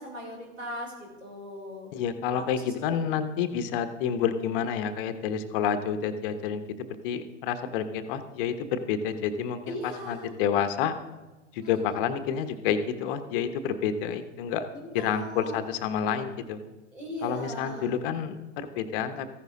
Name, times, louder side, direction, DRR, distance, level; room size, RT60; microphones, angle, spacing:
voice 1, 0.0-1.9 2.3-3.0 9.6-10.4 11.6-12.1 14.8-15.6 16.9-17.9, equal, 85° right, -2 dB, 4.6 m, -39 dB
voice 2, 1.9-6.6 7.0-11.0 11.5-14.7 14.9-16.6 17.2-19.3, left 8 dB, 45° left, 10 dB, 1.0 m, -29 dB
14.5 x 10.5 x 3.7 m, 1.2 s
figure-of-eight pair, 90°, 37 cm